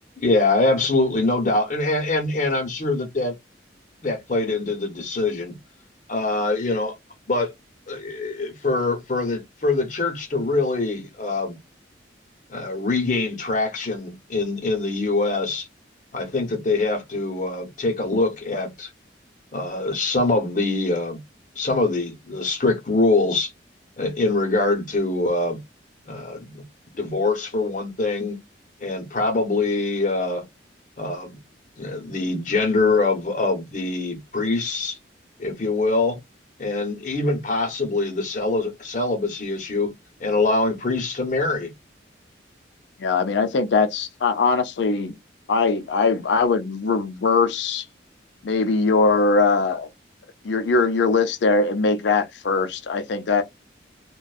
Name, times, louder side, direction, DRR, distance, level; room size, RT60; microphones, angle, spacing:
voice 1, 0.2-3.3 4.0-5.5 6.1-6.9 7.3-7.5 7.9-11.6 12.5-15.7 16.1-18.9 19.5-21.2 21.6-23.5 24.0-25.6 26.1-26.6 26.9-28.4 28.8-30.5 31.0-31.4 31.8-35.0 35.4-36.2 36.6-39.9 40.2-41.7, left 3 dB, 40° left, 0.7 m, -24 dB
voice 2, 43.0-45.1 45.5-47.8 48.4-49.9 50.4-53.4, left 4 dB, 75° left, 0.4 m, -21 dB
2.5 x 2.2 x 2.3 m
head